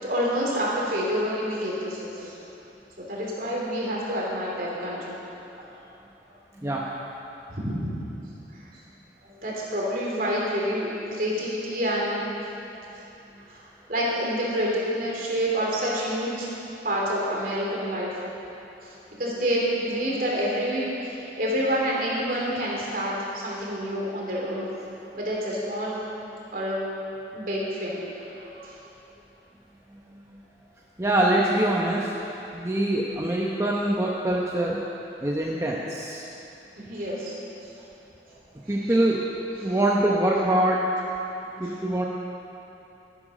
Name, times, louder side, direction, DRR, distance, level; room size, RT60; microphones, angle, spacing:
voice 1, 0.0-2.3 3.1-5.1 7.5-7.9 9.3-12.2 12.9-13.0 13.5-13.6 13.9-16.5 16.8-18.2 18.8-18.9 19.2-24.8 25.1-26.0 26.5-26.8 27.3-28.0 28.3-28.8 36.8-37.3 38.7-38.9 39.6-39.7 41.6-41.7, equal, 50° right, -4 dB, 3.1 m, -28 dB
voice 2, 31.0-32.1 32.5-34.8 35.2-36.3 38.7-39.2 39.6-40.8 41.6-42.1, right 1 dB, 15° right, -3 dB, 0.8 m, -24 dB
13.0 x 9.9 x 6.4 m, 2.9 s
head